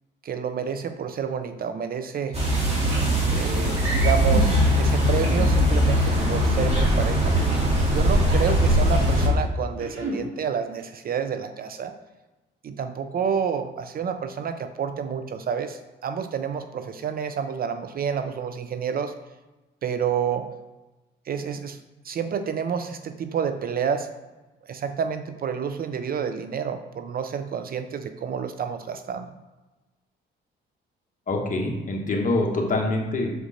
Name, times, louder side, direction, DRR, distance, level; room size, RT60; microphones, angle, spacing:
voice 1, 0.2-2.4 3.3-7.4 7.9-12.0 12.6-19.1 19.8-20.5 21.3-21.8 22.0-24.1 24.7-29.3, right 7 dB, 50° right, 9 dB, 0.5 m, -29 dB
sound 1, 2.3-9.3, equal, 30° right, 2.1 m, -21 dB
sound 2, 2.9-3.1 3.7-4.4 5.2-5.8 7.3-7.7 8.2-9.3 9.7-10.2, right 2 dB, 85° right, 1.6 m, -32 dB
voice 2, 31.3-33.3, left 2 dB, 40° left, 1 dB, 1.4 m, -25 dB
6.2 x 5.0 x 4.2 m, 1.1 s
cardioid pair, 90°, 20 cm